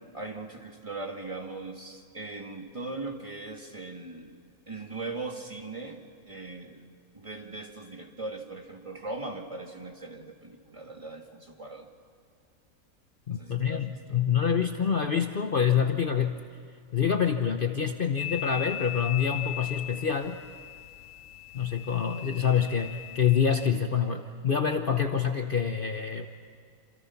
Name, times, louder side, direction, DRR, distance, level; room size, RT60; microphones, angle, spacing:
voice 1, 0.1-4.3 4.7-6.9 7.1-11.9 13.3-14.2, right 3 dB, 20° right, 2 dB, 2.0 m, -39 dB
voice 2, 13.3-16.4 16.9-20.4 21.5-26.3, left 7 dB, 45° left, 6 dB, 1.0 m, -26 dB
sound 1, 18.2-23.7, left 14 dB, 65° left, 1.2 m, -39 dB
28.0 x 27.5 x 5.9 m, 2.2 s
omnidirectional pair, 1.5 m